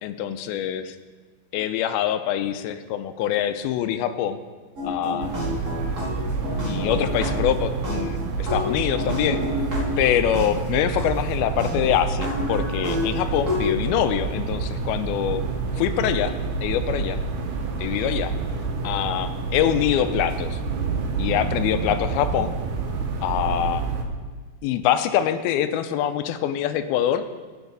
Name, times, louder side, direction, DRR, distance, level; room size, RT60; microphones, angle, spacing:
voice 1, 0.0-1.0 1.5-4.4 4.8-5.3 6.6-9.4 10.0-15.4 15.8-16.3 16.6-17.2 17.8-18.3 18.8-20.6 21.2-22.5 23.2-23.8 24.6-27.2, left 10 dB, 90° left, 9 dB, 2.5 m, -24 dB
sound 1, 4.8-7.6 7.8-10.5 11.0-11.1 11.6-11.7 12.1-13.7, left 1 dB, 25° right, 3.0 m, -29 dB
sound 2, 5.2-24.0, right 4 dB, 65° right, 2.1 m, -28 dB
15.0 x 9.4 x 4.0 m, 1.4 s
omnidirectional pair, 4.4 m